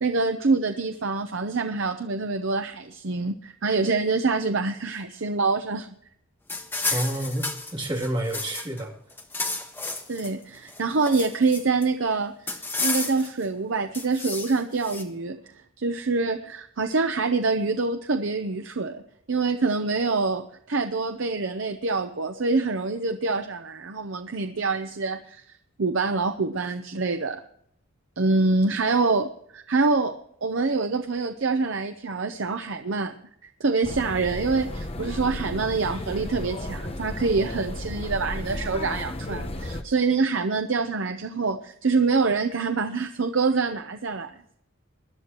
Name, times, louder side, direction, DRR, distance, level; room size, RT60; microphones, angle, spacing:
voice 1, 0.0-5.9 6.8-7.0 10.1-15.4 15.8-19.0 19.3-25.4 25.8-27.4 28.2-33.1 33.6-44.3, right 4 dB, 65° right, 7 dB, 0.7 m, -25 dB
sound 1, 6.5-8.8 9.1-10.3 10.7-11.9 12.5-13.4 13.9-15.0, left 3 dB, 10° left, 1.3 m, -31 dB
voice 2, 6.9-8.9, right 1 dB, 25° right, -1 dB, 2.8 m, -29 dB
sound 2, 33.8-39.8, left 1 dB, 30° left, 0.9 m, -34 dB
21.0 x 11.0 x 3.0 m, 0.67 s
head